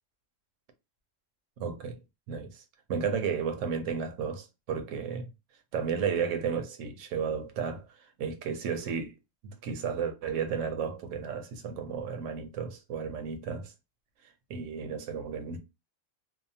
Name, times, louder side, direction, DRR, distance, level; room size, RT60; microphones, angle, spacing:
voice 1, 1.6-2.0 2.3-2.6 2.9-5.3 5.7-7.9 8.2-9.1 9.4-13.7 14.5-15.6, right 6 dB, 75° right, 0.9 m, -33 dB
2.7 x 2.1 x 2.6 m
omnidirectional pair, 1.4 m